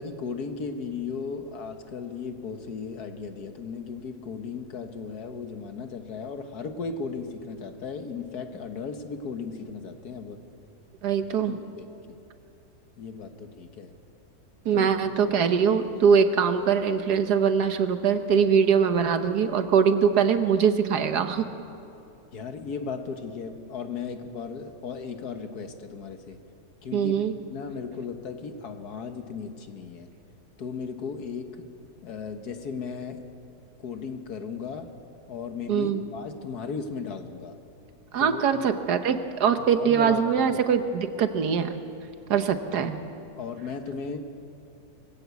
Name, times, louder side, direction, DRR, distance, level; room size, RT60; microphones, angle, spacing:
voice 1, 0.0-10.4 11.2-12.2 13.0-13.9 14.7-14.9 22.3-26.4 26.8-27.2 27.5-30.1 30.6-31.6 32.0-33.2 33.8-34.9 35.3-37.6 38.2-38.7 39.6-40.6 43.3-44.2, left 5 dB, 75° left, 7 dB, 1.9 m, -36 dB
voice 2, 11.0-11.5 14.6-21.4 26.9-27.3 35.7-36.0 38.1-41.8 42.3-43.0, right 7 dB, 85° right, 9 dB, 1.6 m, -22 dB
23.0 x 15.5 x 8.4 m, 2.6 s
omnidirectional pair, 1.7 m